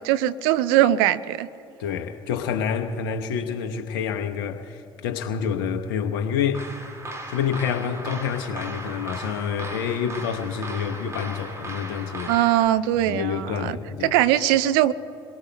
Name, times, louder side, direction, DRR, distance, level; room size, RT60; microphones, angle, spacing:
voice 1, 0.0-1.5 12.3-13.8 14.0-14.9, right 13 dB, 70° right, 14 dB, 0.5 m, -21 dB
voice 2, 1.8-6.7 7.3-12.3 13.1-14.2, left 7 dB, 70° left, 6 dB, 0.9 m, -28 dB
sound 1, 6.5-12.7, right 2 dB, 25° right, 2.1 m, -37 dB
27.5 x 22.5 x 2.3 m, 2.9 s
figure-of-eight pair, 55°, 12 cm